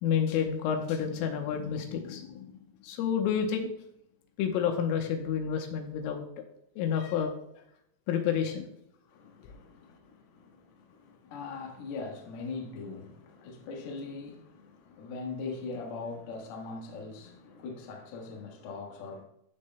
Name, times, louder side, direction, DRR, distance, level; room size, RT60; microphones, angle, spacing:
voice 1, 0.0-2.5 2.8-3.7 4.4-6.3 6.8-7.3 8.1-8.7, left 8 dB, 85° left, 3.5 m, -29 dB
voice 2, 9.0-19.2, left 4 dB, 65° left, 3.0 m, -41 dB
15.5 x 6.5 x 2.2 m
omnidirectional pair, 5.8 m